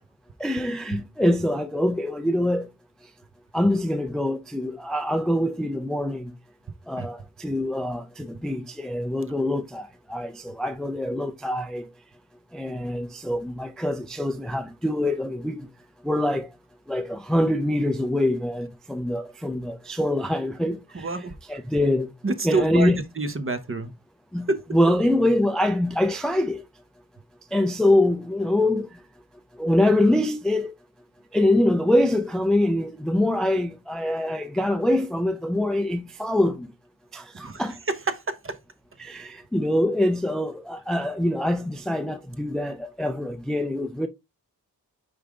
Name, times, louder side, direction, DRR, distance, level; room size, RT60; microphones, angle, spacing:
voice 1, 0.4-2.7 3.5-6.3 6.9-11.9 12.5-15.6 16.1-16.5 16.9-20.8 21.5-22.1 22.4-23.0 24.3-26.6 27.5-28.9 29.6-30.7 31.3-36.7 37.1-37.2 37.6-37.7 39.0-44.1, left 1 dB, ahead, 0.4 m, -24 dB
voice 2, 20.9-21.3 22.2-23.9 24.5-24.6 37.4-37.6 38.1-38.5, right 3 dB, 35° right, 0.9 m, -27 dB
5.5 x 5.0 x 3.6 m
wide cardioid pair, 145°, 38 cm